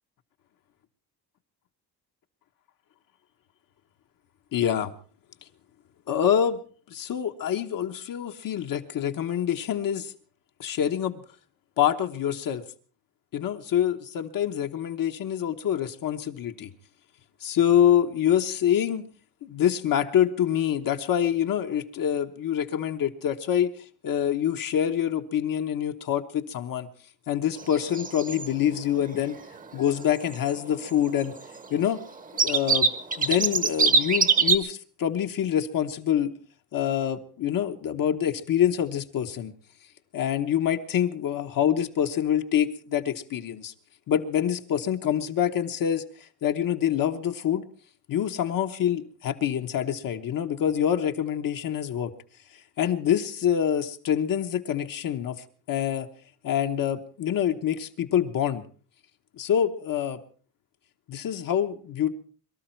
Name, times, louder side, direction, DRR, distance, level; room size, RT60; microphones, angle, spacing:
voice 1, 4.5-4.9 6.1-6.6 6.9-10.1 10.6-11.2 11.8-12.6 13.3-16.7 17.4-19.1 19.4-23.7 24.0-26.9 27.3-29.4 29.7-31.3 31.7-32.0 32.4-32.9 33.2-36.3 36.7-39.5 40.1-43.7 44.1-47.6 48.1-52.1 52.8-56.1 56.4-58.6 59.4-60.2 61.1-62.1, left 9 dB, 60° left, 5 dB, 1.1 m, -26 dB
sound 1, 27.6-28.5 28.7-28.8 29.0-29.2 29.6-29.7 29.9-30.6 30.9-31.6 32.1-32.2 32.4-34.6, right 4 dB, 20° right, 0.9 m, -23 dB
23.0 x 13.0 x 4.5 m, 0.41 s
cardioid pair, 170°, 38 cm